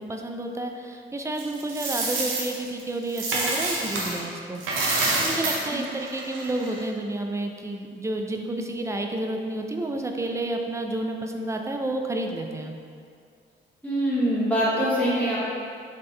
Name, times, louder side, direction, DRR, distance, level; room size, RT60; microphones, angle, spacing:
voice 1, 0.0-4.6 4.9-12.7, right 1 dB, 15° right, 3 dB, 0.4 m, -30 dB
Coin (dropping), 1.4-4.2 4.6-6.8, right 2 dB, 80° right, 0.9 m, -27 dB
voice 2, 13.8-15.5, equal, 5° left, -9 dB, 1.3 m, -24 dB
4.3 x 3.5 x 3.2 m, 2.3 s
cardioid pair, 90°, 20 cm